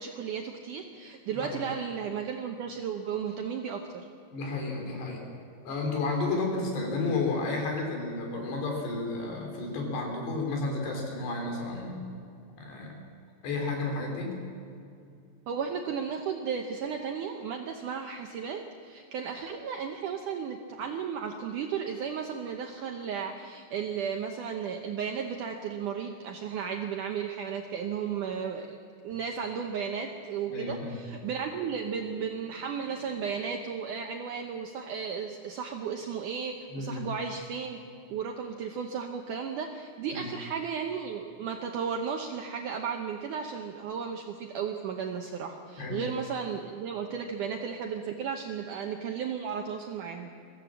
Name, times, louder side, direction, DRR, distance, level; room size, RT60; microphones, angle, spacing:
voice 1, 0.0-4.1 15.5-28.8 29.0-37.8 38.1-50.3, right 6 dB, 75° right, 3 dB, 1.9 m, -34 dB
voice 2, 4.3-5.2 5.7-12.1 12.6-12.9 13.4-14.4 30.5-31.0 36.7-37.1 40.1-40.3 45.8-46.1, left 3 dB, 80° left, 1 dB, 5.5 m, -32 dB
23.0 x 15.5 x 7.4 m, 2.5 s
omnidirectional pair, 4.8 m